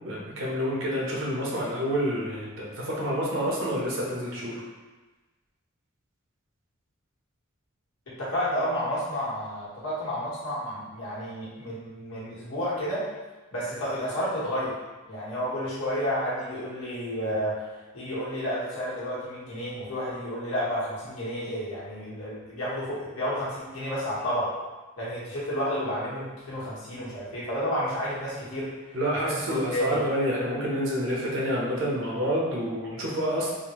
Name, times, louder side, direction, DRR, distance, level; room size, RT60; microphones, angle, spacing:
voice 1, 0.0-4.6 28.9-33.5, equal, 65° right, -4 dB, 0.8 m, -28 dB
voice 2, 8.2-13.0 13.5-14.7 15.1-17.7 17.9-24.5 25.0-29.0 29.2-30.0, equal, 90° left, -8 dB, 1.2 m, -31 dB
3.5 x 2.1 x 2.9 m, 1.2 s
head